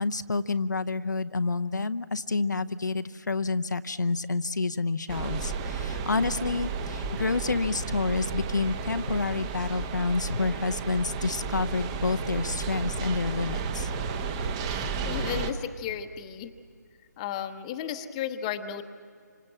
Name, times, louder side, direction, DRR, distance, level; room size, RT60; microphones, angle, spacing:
voice 1, 0.0-13.9, left 3 dB, 70° left, 9 dB, 0.8 m, -29 dB
sound 1, 5.1-15.5, right 4 dB, 20° right, 1.0 m, -33 dB
voice 2, 14.6-16.5 17.2-18.8, left 9 dB, 20° left, 8 dB, 1.0 m, -34 dB
28.5 x 26.0 x 7.5 m, 2.3 s
figure-of-eight pair, 150°, 10 cm